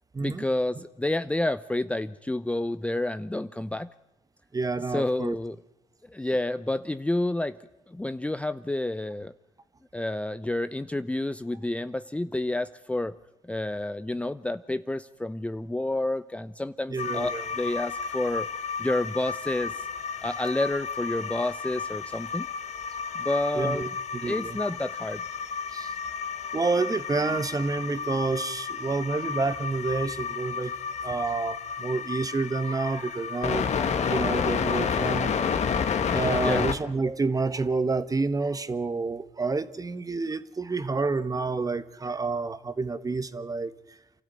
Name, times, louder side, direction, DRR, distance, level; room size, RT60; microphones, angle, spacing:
voice 1, 0.2-3.9 4.9-5.6 6.1-7.6 7.9-9.3 9.9-13.2 13.5-18.5 18.8-19.9 20.2-22.5 23.1-23.9 24.2-25.2 36.4-36.7, left 1 dB, 10° left, 0.7 m, -29 dB
voice 2, 4.5-5.4 16.9-17.5 23.5-24.6 25.7-25.9 26.5-30.8 31.0-35.7 36.1-43.7, right 3 dB, 25° right, 1.4 m, -29 dB
sound 1, 17.0-36.7, left 6 dB, 55° left, 2.0 m, -31 dB
28.0 x 13.0 x 9.1 m
supercardioid pair, 65°, 14 cm